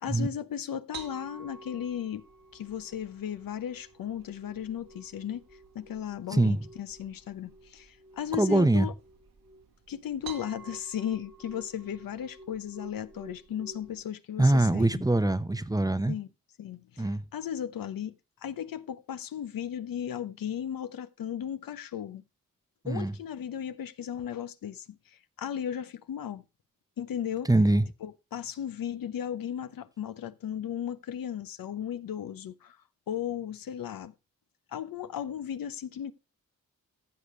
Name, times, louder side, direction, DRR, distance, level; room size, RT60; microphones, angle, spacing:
voice 1, 0.0-2.3 2.5-5.4 5.7-8.9 9.9-15.0 16.1-16.3 16.6-18.1 18.4-22.2 22.9-26.4 27.0-27.5 28.0-32.8 33.1-34.1 34.7-36.1, left 9 dB, 75° left, 0.9 m, -36 dB
sound 1, 0.9-14.0, right 4 dB, 85° right, 2.0 m, -50 dB
voice 2, 6.3-6.7 8.4-8.9 14.4-16.1 17.0-17.2 22.8-23.1 27.5-27.8, right 2 dB, 10° right, 0.7 m, -23 dB
15.0 x 6.7 x 3.2 m
cardioid pair, 90°, 34 cm